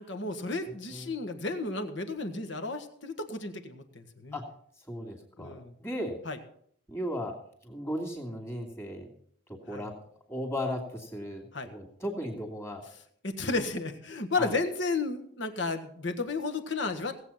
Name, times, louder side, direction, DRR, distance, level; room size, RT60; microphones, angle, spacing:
voice 1, 0.0-4.4 5.4-5.7 6.2-6.4 9.7-9.8 11.5-11.7 13.2-17.2, left 3 dB, 60° left, 6 dB, 1.6 m, -33 dB
voice 2, 4.9-6.2 6.9-7.3 7.6-9.1 9.7-9.9 10.3-12.8 13.4-13.6 14.4-14.5, equal, 15° left, 1 dB, 2.7 m, -36 dB
18.0 x 8.1 x 5.8 m, 0.64 s
head